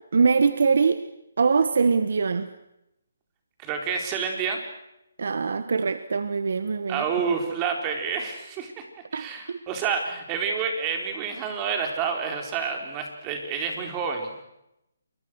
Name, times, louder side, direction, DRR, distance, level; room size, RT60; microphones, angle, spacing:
voice 1, 0.1-1.0 1.4-2.5 5.2-7.0 9.1-9.6, right 5 dB, 65° right, 12 dB, 1.4 m, -23 dB
voice 2, 3.6-4.6 6.9-8.8 9.1-14.4, right 6 dB, 20° right, 3 dB, 4.2 m, -29 dB
28.5 x 23.0 x 6.4 m, 0.86 s
hypercardioid pair, 160°, 0 cm